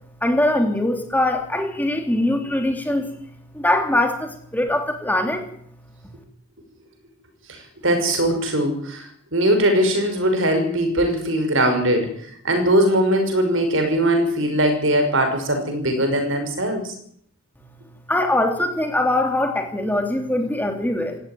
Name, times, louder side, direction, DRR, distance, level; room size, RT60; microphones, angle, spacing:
voice 1, 0.2-3.1 3.5-5.4 18.1-21.2, left 1 dB, 10° left, 4 dB, 3.2 m, -22 dB
voice 2, 7.5-12.1 12.4-16.9, right 1 dB, 65° right, 7 dB, 6.0 m, -20 dB
18.5 x 15.5 x 9.4 m, 0.65 s
head